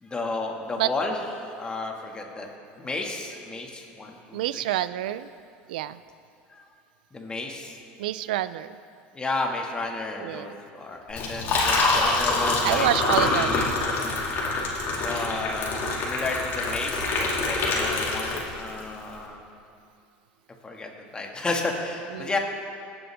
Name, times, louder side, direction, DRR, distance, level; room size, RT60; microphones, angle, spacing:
voice 1, 0.0-2.5 2.8-4.6 6.5-6.7 7.1-7.8 9.1-13.7 15.0-19.4 20.6-22.4, left 3 dB, 20° left, 1 dB, 1.9 m, -32 dB
voice 2, 4.3-5.3 5.7-6.0 8.0-8.8 10.2-10.5 12.6-13.6 22.1-22.3, right 13 dB, 85° right, 15 dB, 0.4 m, -27 dB
Liquid, 11.1-18.8, left 3 dB, 50° left, 2.3 m, -25 dB
21.5 x 7.9 x 3.5 m, 2.5 s
supercardioid pair, 100°, 5 cm